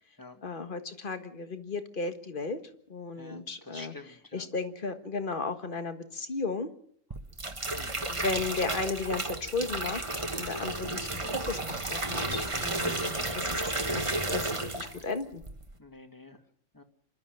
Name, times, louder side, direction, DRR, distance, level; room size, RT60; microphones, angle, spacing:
voice 1, 0.4-2.6 2.9-6.7 8.1-11.2 11.5-13.6 13.9-14.0 14.3-15.4, left 4 dB, 40° left, 8 dB, 1.6 m, -35 dB
voice 2, 3.2-4.5 7.7-8.1 12.8-14.0 15.8-16.4 16.7-16.8, left 2 dB, 15° left, 6 dB, 1.8 m, -48 dB
sound 1, 7.1-15.1 15.4-15.8, right 2 dB, 25° right, 1.5 m, -32 dB
27.0 x 12.5 x 7.7 m, 0.66 s
omnidirectional pair, 1.4 m